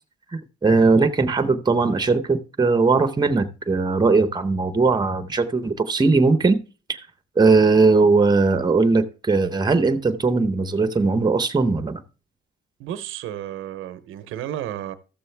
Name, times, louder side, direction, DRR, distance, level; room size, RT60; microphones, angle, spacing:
voice 1, 0.3-6.6 6.9-7.0 7.4-12.0, right 3 dB, 20° right, 0.9 m, -19 dB
voice 2, 12.8-14.9, right 11 dB, 90° right, 0.7 m, -32 dB
13.5 x 6.9 x 3.3 m
cardioid pair, 90°, 20 cm